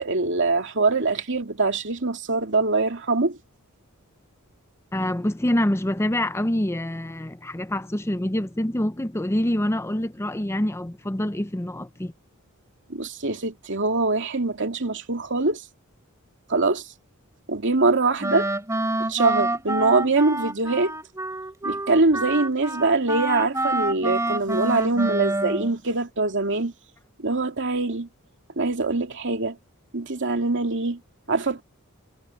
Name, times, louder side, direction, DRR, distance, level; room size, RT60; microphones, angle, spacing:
voice 1, 0.0-3.4 12.9-15.6 16.5-16.9 17.5-18.5 19.0-20.9 21.6-26.7 27.2-28.1 28.6-29.6 29.9-31.0 31.3-31.6, right 3 dB, 55° right, 2.7 m, -23 dB
voice 2, 4.9-12.1, left 1 dB, 10° left, 0.7 m, -26 dB
Wind instrument woodwind instrument, 18.2-25.7, right 2 dB, 15° right, 3.7 m, -27 dB
head